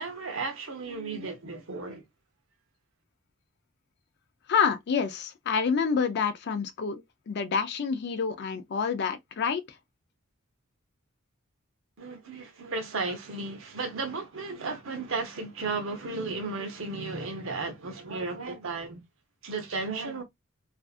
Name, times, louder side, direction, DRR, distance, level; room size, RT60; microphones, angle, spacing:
voice 1, 0.0-2.0 12.0-19.0 19.4-20.2, right 3 dB, 70° right, 0.8 m, -34 dB
voice 2, 4.5-9.6, left 6 dB, 55° left, 0.4 m, -28 dB
2.5 x 2.4 x 2.4 m
head